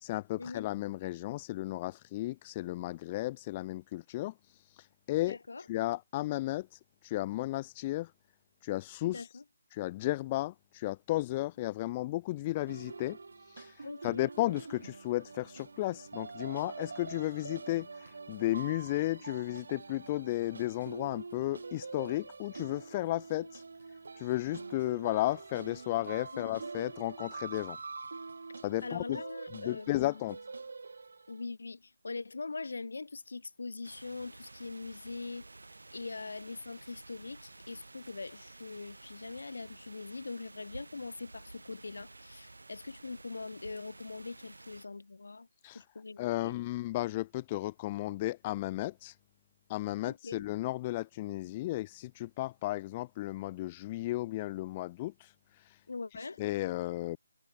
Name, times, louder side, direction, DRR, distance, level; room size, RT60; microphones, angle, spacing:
voice 1, 0.0-4.3 4.7-5.4 5.7-8.1 8.6-9.3 9.7-13.2 13.5-23.6 24.2-27.8 28.6-29.2 29.5-30.4 45.6-45.8 46.2-49.1 49.7-55.8 56.4-57.2, left 17 dB, 20° left, 0.7 m, -34 dB
voice 2, 5.3-5.6 9.1-9.4 13.8-14.3 26.3-26.5 28.8-30.4 31.3-35.4 35.9-45.5 45.7-46.5 50.0-50.4 55.9-56.4, left 3 dB, 70° left, 6.6 m, -42 dB
sound 1, 12.7-31.4, right 4 dB, 65° right, 6.5 m, -45 dB
sound 2, 33.8-44.9, right 2 dB, 90° right, 6.3 m, -52 dB
figure-of-eight pair, 160°, 0 cm